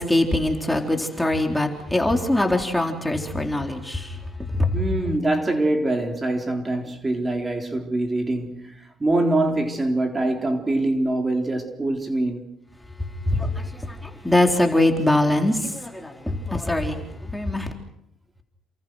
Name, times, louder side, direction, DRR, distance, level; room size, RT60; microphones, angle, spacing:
voice 1, 0.0-4.2 4.5-4.8 13.3-17.7, left 1 dB, 5° left, 3.8 m, -23 dB
voice 2, 4.7-12.5, right 2 dB, 20° right, 3.9 m, -24 dB
29.5 x 27.0 x 6.4 m
cardioid pair, 105°, 0 cm